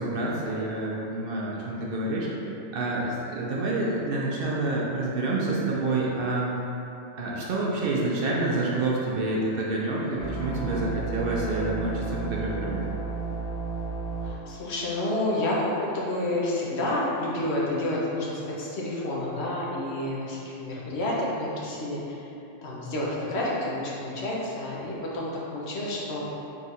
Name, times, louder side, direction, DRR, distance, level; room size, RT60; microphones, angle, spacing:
voice 1, 0.0-2.3 2.7-6.5 7.2-12.8, right 2 dB, 60° right, -4 dB, 0.7 m, -28 dB
sound 1, 10.2-14.3, right 4 dB, 40° left, 0.8 m, -32 dB
voice 2, 14.2-22.3 22.6-26.2, left 1 dB, 70° left, -5 dB, 1.0 m, -29 dB
3.8 x 2.4 x 4.1 m, 2.9 s
omnidirectional pair, 1.2 m